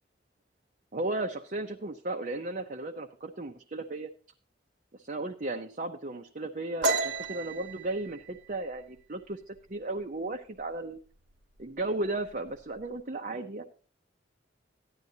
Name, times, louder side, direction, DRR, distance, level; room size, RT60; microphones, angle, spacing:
voice 1, 0.9-4.1 4.9-11.0 11.6-13.6, right 2 dB, 45° right, 3 dB, 0.7 m, -35 dB
sound 1, 6.8-10.3 10.6-10.9 11.3-11.8 12.1-12.8, right 2 dB, 80° right, 1.4 m, -33 dB
14.5 x 10.5 x 2.8 m, 0.39 s
head